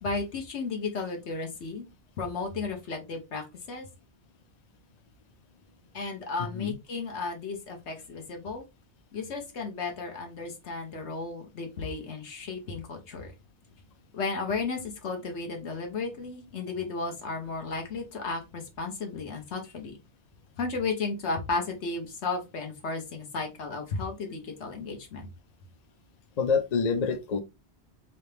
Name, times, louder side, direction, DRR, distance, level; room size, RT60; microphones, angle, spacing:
voice 1, 0.0-1.8 2.2-3.9 5.9-8.6 9.1-13.3 14.1-19.9 20.6-25.3, left 4 dB, 80° left, 1.3 m, -34 dB
voice 2, 26.4-27.4, left 5 dB, 50° left, 0.5 m, -26 dB
3.2 x 2.8 x 3.3 m
omnidirectional pair, 1.2 m